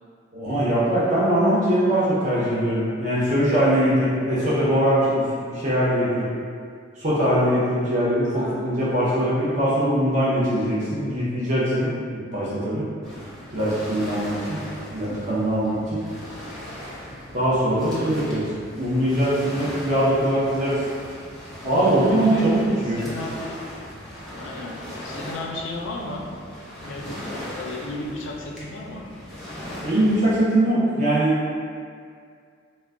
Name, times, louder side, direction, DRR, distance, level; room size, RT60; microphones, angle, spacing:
voice 1, 0.3-6.3 7.0-12.8 13.5-14.6 14.9-16.0 17.3-18.5 18.8-20.8 21.6-22.6 22.8-23.0 29.8-31.4, right 1 dB, 40° right, -10 dB, 0.5 m, -22 dB
voice 2, 8.4-8.7 22.2-22.5 22.9-23.6 24.3-26.3 26.9-29.1, left 2 dB, 75° left, -1 dB, 0.4 m, -34 dB
Waves surf, 13.0-30.3, left 1 dB, ahead, 0.6 m, -38 dB
2.2 x 2.1 x 3.5 m, 2.2 s
head